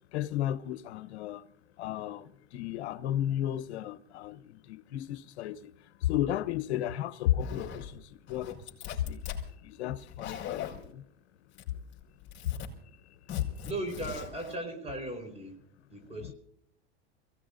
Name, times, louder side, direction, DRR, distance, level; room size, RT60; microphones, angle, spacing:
voice 1, 0.1-1.5 1.8-9.3 9.6-11.0 11.7-11.8 12.4-12.6 13.0-13.7 16.2-16.3, left 12 dB, 80° left, 1.0 m, -34 dB
Zipper (clothing), 7.4-7.9 8.3-9.4 10.0-10.9 11.5-11.9 12.2-12.7 13.3-14.5, left 8 dB, 35° left, 4.8 m, -40 dB
voice 2, 13.6-15.6 15.9-16.3, right 1 dB, 20° right, 4.4 m, -37 dB
29.0 x 17.5 x 2.6 m
supercardioid pair, 120°, 33 cm